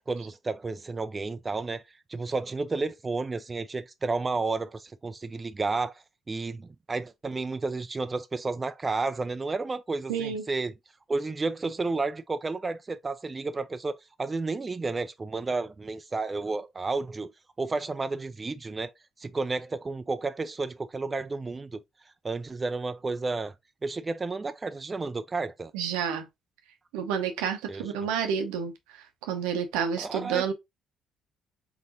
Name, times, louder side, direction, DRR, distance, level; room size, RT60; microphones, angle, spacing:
voice 1, 0.1-1.8 2.1-5.9 6.3-10.7 11.1-17.3 17.6-18.9 19.2-21.8 22.2-23.5 23.8-25.7 27.7-27.9 30.0-30.5, right 3 dB, 30° right, 0.4 m, -31 dB
voice 2, 10.1-10.4 25.7-26.3 26.9-30.5, right 7 dB, 80° right, 0.8 m, -30 dB
4.0 x 3.7 x 2.7 m
hypercardioid pair, 50°, 0 cm